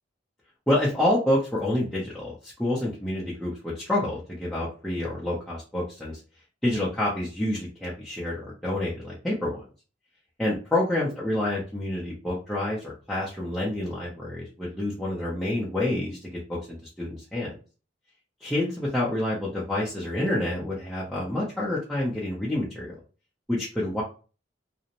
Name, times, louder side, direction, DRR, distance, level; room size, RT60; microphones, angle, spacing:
voice 1, 0.7-6.2 6.6-9.6 10.4-17.6 18.4-23.0 23.5-24.0, left 1 dB, 5° left, -8 dB, 0.5 m, -28 dB
2.5 x 2.0 x 2.8 m, 0.35 s
head